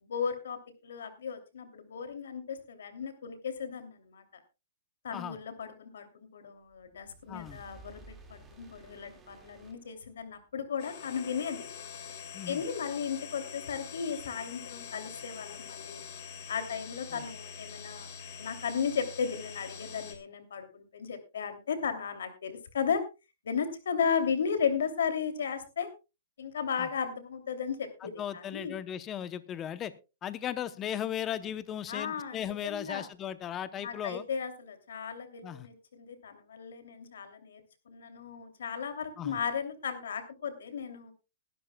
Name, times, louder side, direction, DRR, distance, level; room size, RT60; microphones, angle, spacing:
voice 1, 0.0-0.6 0.8-4.2 5.0-11.7 12.5-16.0 16.5-18.1 18.4-23.0 23.4-25.9 26.4-28.7 31.9-33.1 33.8-41.1, left 6 dB, 85° left, 8 dB, 2.8 m, -35 dB
sound 1, 6.7-10.5, right 2 dB, 10° right, 2.0 m, -54 dB
voice 2, 7.3-7.6 12.3-12.6 17.1-17.2 26.8-26.9 28.0-29.9 30.2-34.2 35.4-35.7 39.2-39.4, left 10 dB, 15° left, 15 dB, 0.8 m, -37 dB
sound 2, 10.8-20.2, left 7 dB, 40° left, 2.6 m, -45 dB
21.0 x 12.0 x 2.3 m, 0.28 s
hypercardioid pair, 165°, 0 cm